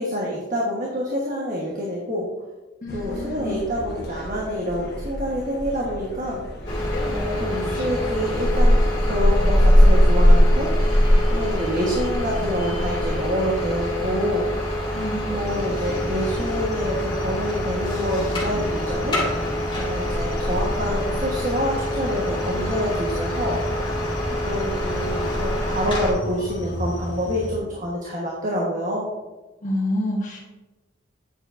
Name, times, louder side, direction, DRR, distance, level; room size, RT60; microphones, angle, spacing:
voice 1, 0.0-2.3 2.9-6.4 7.0-14.5 15.3-19.5 19.8-23.6 24.4-29.1, equal, 45° right, -4 dB, 1.4 m, -27 dB
voice 2, 2.8-3.6 14.9-15.5 29.6-30.4, left 1 dB, 45° left, -2 dB, 1.5 m, -28 dB
sound 1, 2.9-10.1, equal, 60° left, 1.2 m, -37 dB
sound 2, 6.7-26.1, equal, 30° left, 2.4 m, -22 dB
sound 3, 15.5-27.6, equal, 75° left, 1.7 m, -35 dB
9.7 x 7.1 x 2.6 m, 1.1 s
head